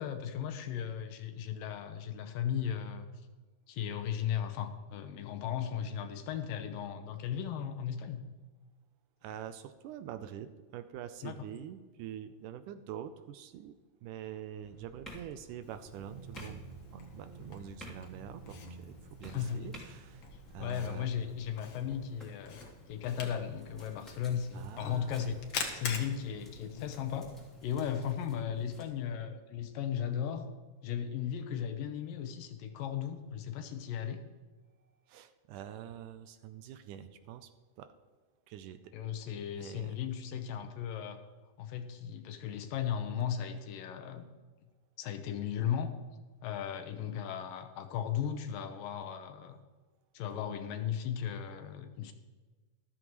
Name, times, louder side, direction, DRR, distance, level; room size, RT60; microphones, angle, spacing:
voice 1, 0.0-3.1 3.7-8.2 11.2-11.4 19.3-19.7 20.6-25.4 25.7-27.3 27.6-30.5 30.8-34.2 38.9-41.2 41.6-44.2 45.0-45.9 46.4-49.6 50.1-52.1, left 9 dB, 80° left, 7 dB, 2.7 m, -36 dB
voice 2, 9.2-13.7 14.0-16.7 16.9-20.2 20.5-21.2 24.5-25.2 35.1-37.5 37.8-37.9 38.5-38.9 39.5-40.0, right 10 dB, 80° right, 11 dB, 2.1 m, -45 dB
sound 1, 14.6-28.8, left 1 dB, ahead, 2.4 m, -54 dB
Camera, 15.6-27.6, left 5 dB, 55° left, 1.9 m, -46 dB
sound 2, 15.9-21.9, right 3 dB, 35° right, 0.8 m, -52 dB
14.0 x 13.0 x 3.1 m, 1.3 s
omnidirectional pair, 3.9 m